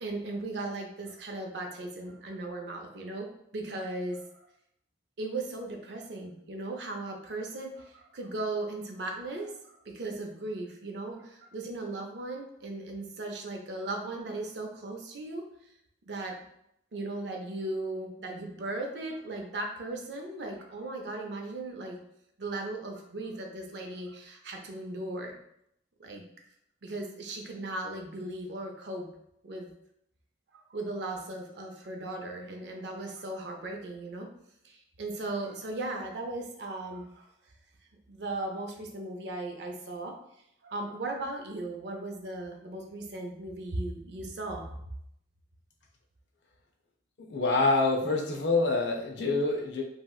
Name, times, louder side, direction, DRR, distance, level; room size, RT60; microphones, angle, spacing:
voice 1, 0.0-3.3 3.5-4.5 5.2-15.4 16.1-16.4 16.9-22.0 22.4-25.3 26.0-26.2 26.8-29.1 29.4-29.7 30.5-34.3 34.6-37.3 38.1-40.1 40.6-44.7, right 2 dB, 65° right, 2 dB, 0.5 m, -37 dB
voice 2, 47.3-49.8, left 3 dB, 70° left, 1 dB, 0.6 m, -26 dB
3.1 x 2.7 x 2.3 m, 0.76 s
head